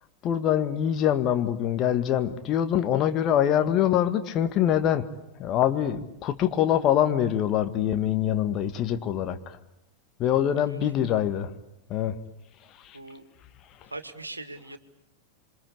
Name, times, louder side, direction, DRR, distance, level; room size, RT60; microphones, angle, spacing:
voice 1, 0.2-5.1 5.4-9.6 10.2-11.5 11.9-12.2 12.7-13.0 13.8-13.9, left 10 dB, 35° left, 8 dB, 1.9 m, -24 dB
voice 2, 10.3-10.8 12.9-13.3 13.8-14.8, right 2 dB, 80° right, 10 dB, 2.0 m, -41 dB
27.5 x 25.5 x 8.5 m, 0.83 s
figure-of-eight pair, 90°, 0 cm